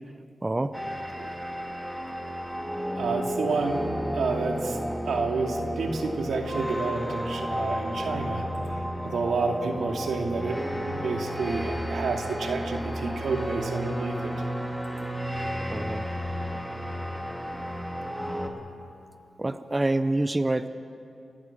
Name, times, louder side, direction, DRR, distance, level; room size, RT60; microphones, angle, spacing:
voice 1, 0.4-0.7 15.7-16.1 19.4-20.7, right 2 dB, 20° right, 11 dB, 0.6 m, -26 dB
sound 1, 0.7-18.5, equal, ahead, 2.1 m, -32 dB
voice 2, 3.0-3.8 4.1-4.8 5.0-8.5 9.0-10.6 10.9-14.3, right 4 dB, 90° right, 2 dB, 2.4 m, -29 dB
29.5 x 11.5 x 8.7 m, 2.7 s
wide cardioid pair, 105°, 0 cm